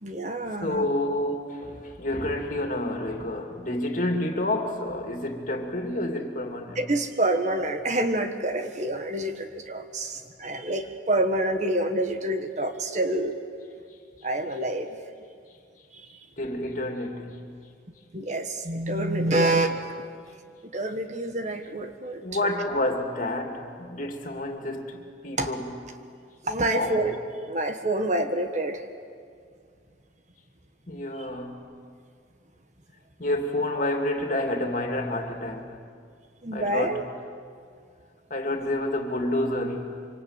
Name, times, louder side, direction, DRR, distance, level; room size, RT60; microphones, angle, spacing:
voice 1, 0.0-0.9 6.7-13.4 14.2-15.0 18.1-19.8 20.7-22.2 25.4-25.5 26.4-27.2 27.5-28.8 36.4-37.0, right 1 dB, 40° right, 1.5 m, -27 dB
voice 2, 0.6-6.8 16.4-17.5 22.2-25.8 26.7-27.0 30.9-31.7 33.2-35.8 36.5-37.1 38.3-40.1, left 1 dB, 45° left, 2.8 m, -29 dB
25.5 x 25.5 x 9.0 m
head